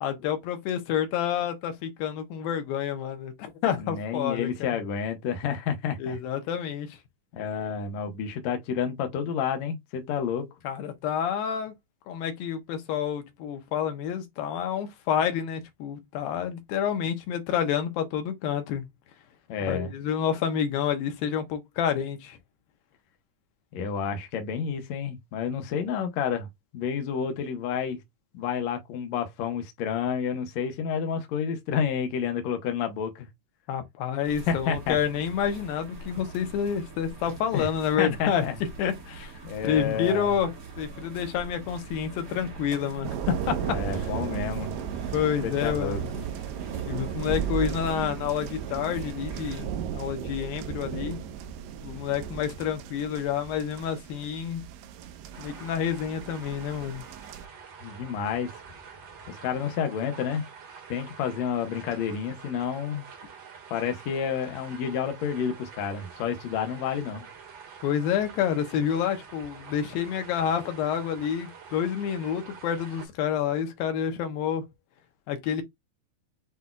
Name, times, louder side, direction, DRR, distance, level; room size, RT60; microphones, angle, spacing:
voice 1, 0.0-4.8 6.0-7.0 10.6-11.7 12.1-18.8 19.7-22.4 33.7-38.4 38.8-39.3 39.6-40.5 40.8-44.1 45.1-46.1 46.9-51.2 51.8-54.6 55.4-57.0 67.8-74.7 75.3-75.6, left 8 dB, 85° left, 2.8 m, -29 dB
voice 2, 3.8-6.2 7.3-10.5 19.5-19.9 23.7-26.5 26.7-28.0 28.3-33.3 34.5-35.0 37.5-37.7 38.0-38.6 39.4-40.3 43.6-44.8 45.4-46.0 57.8-58.5 59.3-60.4 60.9-63.1 63.7-67.3, left 7 dB, 65° left, 2.0 m, -30 dB
sound 1, 34.2-49.7, right 3 dB, 70° right, 0.8 m, -43 dB
sound 2, 43.0-57.5, right 8 dB, 85° right, 2.3 m, -35 dB
sound 3, 55.3-73.1, right 6 dB, 50° right, 2.3 m, -47 dB
8.0 x 2.7 x 2.4 m
omnidirectional pair, 4.1 m